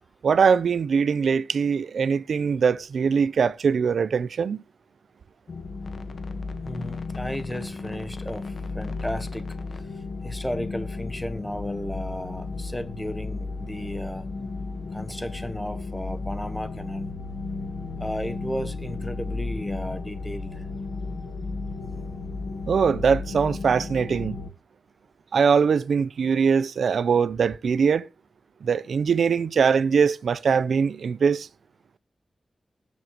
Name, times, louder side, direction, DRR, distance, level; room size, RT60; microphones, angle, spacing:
voice 1, 0.2-4.6 22.7-24.4 25.3-28.1 28.6-31.5, right 6 dB, 85° right, 0.5 m, -22 dB
sound 1, 5.5-24.5, left 3 dB, 55° left, 1.2 m, -34 dB
voice 2, 6.6-14.3 14.9-17.1 18.0-20.7, equal, 5° left, 0.9 m, -34 dB
20.0 x 7.3 x 3.0 m
wide cardioid pair, 150°, 0 cm